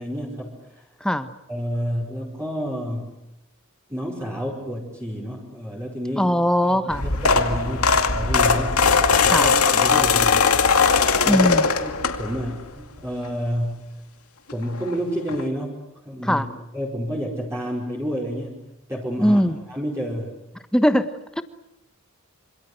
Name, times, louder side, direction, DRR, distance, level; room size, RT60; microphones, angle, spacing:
voice 1, 0.0-0.8 1.5-3.2 3.9-6.3 6.6-8.9 9.2-10.6 11.2-11.5 11.8-13.9 14.5-16.5 16.7-18.6 18.9-19.4 19.7-20.4, equal, 10° right, -3 dB, 4.8 m, -30 dB
voice 2, 1.0-1.3 6.2-7.0 9.3-9.5 11.2-11.7 16.3-16.4 19.2-19.6 20.7-21.4, equal, 5° left, 10 dB, 1.2 m, -20 dB
sound 1, 6.9-12.5 13.0-13.3 14.5-14.6 14.8-14.9 15.3-15.4, left 5 dB, 85° left, 2.3 m, -19 dB
27.0 x 26.5 x 8.0 m, 0.88 s
head